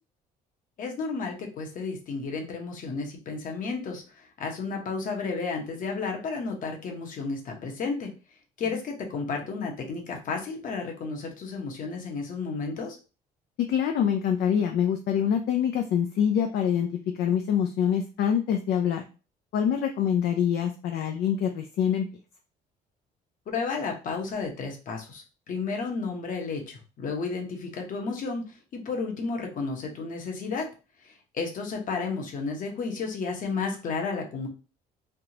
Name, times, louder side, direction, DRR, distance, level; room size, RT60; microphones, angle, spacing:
voice 1, 0.8-8.1 8.6-13.0 23.5-30.7 31.0-34.5, left 4 dB, 50° left, 2 dB, 1.0 m, -32 dB
voice 2, 13.6-16.9 17.2-19.0 19.5-22.1, left 8 dB, 70° left, 3 dB, 0.5 m, -25 dB
3.5 x 2.4 x 2.8 m, 0.33 s
cardioid pair, 110°, 17 cm